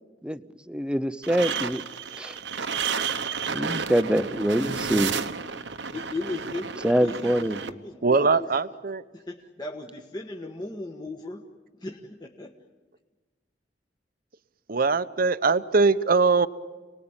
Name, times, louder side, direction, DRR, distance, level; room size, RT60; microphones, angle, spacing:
voice 1, 0.2-1.8 2.2-2.4 3.5-5.1 6.8-7.6, equal, 5° right, 13 dB, 0.8 m, -25 dB
sound 1, 1.2-7.7, right 6 dB, 85° right, 1.2 m, -31 dB
voice 2, 5.9-8.5 9.1-11.5 11.8-12.5, left 2 dB, 25° left, 1 dB, 1.5 m, -37 dB
voice 3, 8.0-9.0 14.7-16.5, right 4 dB, 55° right, 14 dB, 0.9 m, -21 dB
29.0 x 20.0 x 8.9 m, 1.3 s
head